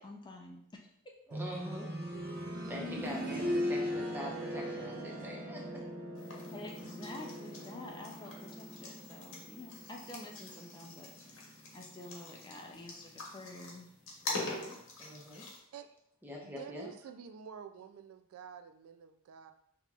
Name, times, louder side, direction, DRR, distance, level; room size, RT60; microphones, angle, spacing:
voice 1, 0.0-1.1 6.5-13.9, left 2 dB, 20° left, 1 dB, 0.4 m, -49 dB
voice 2, 1.3-1.9 2.7-5.6 14.2-14.7 15.0-15.4 16.2-16.9, equal, 10° right, -2 dB, 0.8 m, -44 dB
sound 1, 1.3-12.1 13.4-13.5, equal, 45° right, 0.7 m, -40 dB
sound 2, 6.2-15.6, left 2 dB, 60° left, 1.0 m, -45 dB
voice 3, 16.4-19.5, right 7 dB, 70° right, 8 dB, 0.3 m, -49 dB
5.9 x 2.9 x 2.4 m, 0.72 s
head